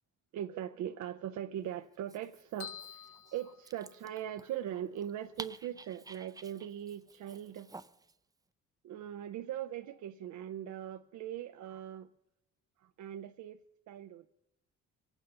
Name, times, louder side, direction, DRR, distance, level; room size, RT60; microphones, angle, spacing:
voice 1, 0.3-7.7 8.8-12.1 13.0-13.6 13.9-14.3, right 11 dB, 70° right, 0.6 m, -40 dB
Dog, 1.9-8.2, right 3 dB, 10° right, 0.5 m, -52 dB
sound 1, 2.6-4.4, left 9 dB, 90° left, 0.7 m, -49 dB
23.5 x 9.0 x 5.5 m
cardioid pair, 90°, 30 cm